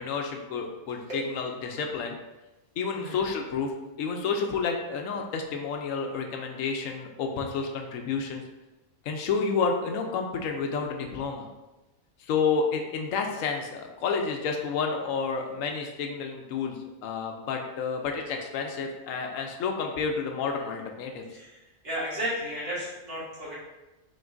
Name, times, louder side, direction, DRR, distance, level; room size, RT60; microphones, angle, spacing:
voice 1, 0.0-2.2 2.8-3.7 4.0-8.4 9.0-11.5 12.3-21.2, left 5 dB, 75° left, 3 dB, 0.9 m, -30 dB
voice 2, 2.9-3.2 21.3-21.5 21.8-23.6, equal, 70° right, -9 dB, 2.1 m, -33 dB
5.2 x 3.1 x 2.5 m, 1.0 s
omnidirectional pair, 1.4 m